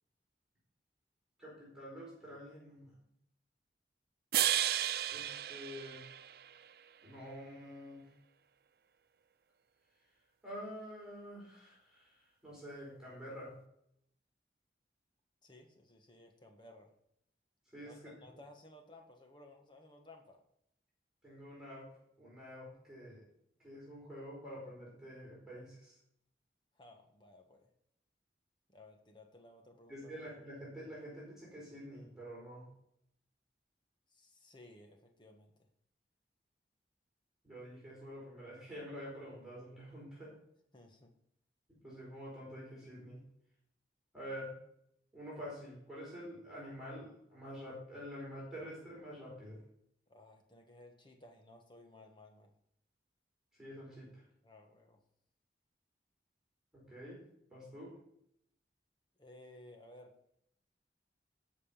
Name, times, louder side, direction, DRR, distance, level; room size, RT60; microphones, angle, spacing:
voice 1, 1.4-3.0 5.1-6.1 7.0-8.1 10.4-13.6 17.7-17.9 21.2-21.9 22.2-23.3 23.6-26.0 29.9-32.7 37.4-40.3 41.7-43.2 44.1-44.6 45.1-49.6 53.6-54.2 56.7-57.2 57.5-58.0, equal, 5° right, -7 dB, 4.5 m, -48 dB
sound 1, 4.3-6.7, right 12 dB, 60° right, 0.4 m, -33 dB
voice 2, 15.4-16.9 17.8-20.4 26.7-27.7 28.7-30.1 34.1-35.5 40.7-41.1 50.1-52.5 54.4-55.0 59.2-60.1, left 1 dB, 25° left, 3 dB, 1.5 m, -58 dB
14.5 x 5.4 x 5.7 m, 0.73 s
head